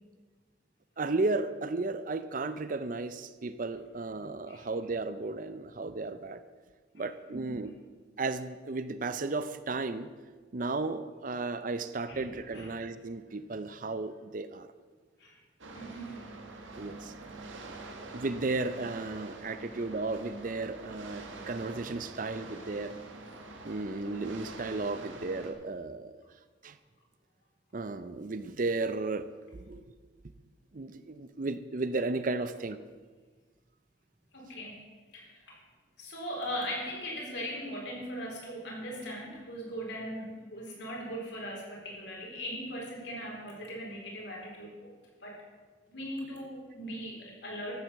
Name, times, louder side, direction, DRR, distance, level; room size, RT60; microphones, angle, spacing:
voice 1, 1.0-6.4 7.0-7.7 8.2-10.1 10.5-14.7 16.8-17.1 18.1-22.9 23.6-26.1 26.6-26.7 27.7-29.3 29.5-29.8 30.7-32.8, right 3 dB, 45° right, 12 dB, 0.5 m, -34 dB
voice 2, 7.3-7.7 12.1-12.8 15.2-15.4 15.7-16.1 34.3-34.8 35.1-35.6 36.0-44.9 45.2-45.4 45.9-47.8, equal, 65° left, -2 dB, 4.1 m, -39 dB
sound 1, 15.6-25.5, right 2 dB, 90° right, 1.8 m, -45 dB
14.0 x 7.7 x 7.0 m, 1.4 s
head